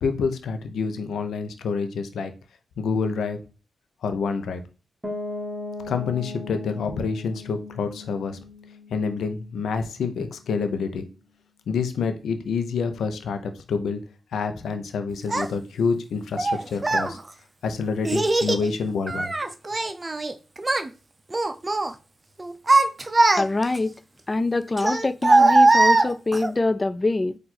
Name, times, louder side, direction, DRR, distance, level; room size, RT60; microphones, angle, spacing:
voice 1, 0.0-2.3 2.8-3.4 4.0-4.6 5.8-8.4 8.9-11.0 11.7-14.0 14.3-17.2 17.6-19.3, left 5 dB, 85° left, 0.7 m, -27 dB
Piano, 5.0-10.7, left 2 dB, 15° right, 1.3 m, -38 dB
Child speech kid speaking, 15.3-15.5 16.4-17.1 18.0-18.6 19.1-20.3 20.6-20.9 21.3-21.9 22.4-23.8 24.8-26.5, right 2 dB, 30° right, 0.5 m, -20 dB
voice 2, 23.3-24.0 24.3-27.4, left 2 dB, 30° left, 0.3 m, -24 dB
4.5 x 2.5 x 4.1 m
cardioid pair, 60°, 0 cm